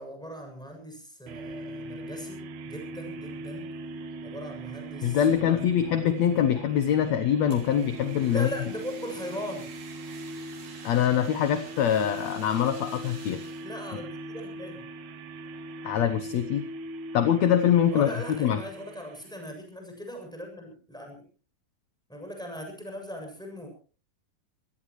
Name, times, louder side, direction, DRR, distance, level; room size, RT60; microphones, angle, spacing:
voice 1, 0.0-3.7 4.2-5.7 8.3-9.8 13.6-14.9 17.9-21.2 22.1-23.7, equal, ahead, 2 dB, 7.0 m, -39 dB
sound 1, 1.3-19.5, right 2 dB, 65° right, 2.3 m, -40 dB
voice 2, 5.0-8.5 10.8-13.4 13.9-14.0 15.8-16.7 17.1-18.1 18.4-18.6, left 9 dB, 65° left, 9 dB, 1.8 m, -24 dB
Fire, 7.5-13.7, right 4 dB, 85° right, 5.8 m, -50 dB
25.0 x 17.5 x 3.1 m, 0.39 s
omnidirectional pair, 4.2 m